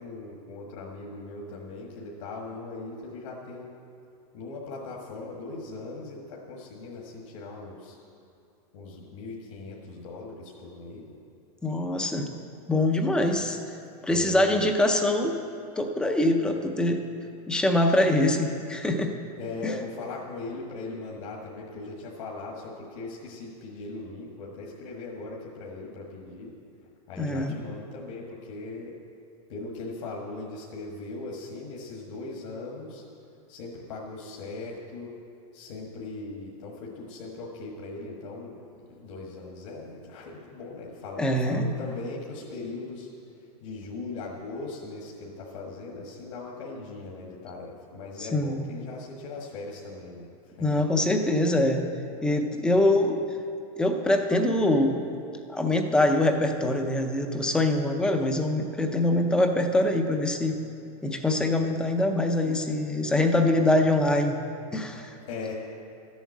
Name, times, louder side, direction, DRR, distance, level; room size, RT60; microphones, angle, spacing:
voice 1, 0.0-3.7 4.3-8.0 8.7-11.2 14.0-14.6 19.4-26.5 27.1-28.9 29.5-33.0 33.5-35.1 35.5-43.1 43.6-50.8 65.3-65.5, left 3 dB, 55° left, -2 dB, 1.5 m, -39 dB
voice 2, 11.6-12.3 12.7-13.6 14.0-15.3 15.8-17.0 17.5-19.1 19.6-19.7 27.2-27.6 41.2-41.7 48.2-48.6 50.6-51.8 52.2-53.2 53.8-55.0 55.5-60.6 61.0-64.4 64.7-65.2, left 1 dB, 5° left, 5 dB, 0.5 m, -24 dB
12.5 x 7.2 x 8.4 m, 2.6 s
supercardioid pair, 170°, 19 cm